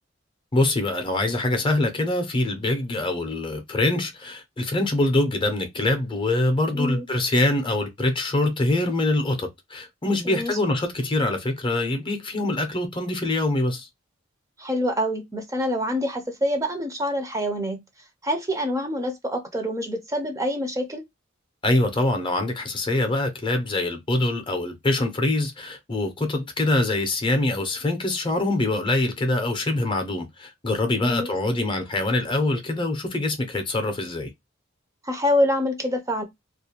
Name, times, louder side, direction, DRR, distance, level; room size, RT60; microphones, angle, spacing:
voice 1, 0.5-13.9 21.6-34.3, left 2 dB, 25° left, 0.6 m, -24 dB
voice 2, 6.7-7.1 10.2-10.6 14.6-17.8 18.2-21.0 31.0-31.3 35.0-36.2, equal, 15° right, 0.5 m, -26 dB
2.4 x 2.1 x 2.7 m
head